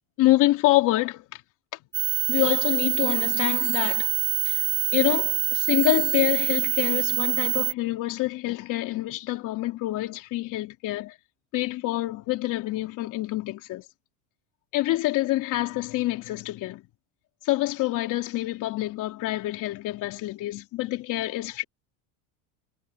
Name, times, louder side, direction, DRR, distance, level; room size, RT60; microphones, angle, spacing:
voice 1, 0.2-1.2 2.3-4.1 4.5-4.6 4.9-11.1 11.5-13.8 14.7-16.8 17.5-21.6, left 17 dB, 45° left, 3.5 m, -26 dB
sound 1, 1.9-7.7, right 22 dB, 65° right, 1.3 m, -25 dB
cardioid pair, 155°, 41 cm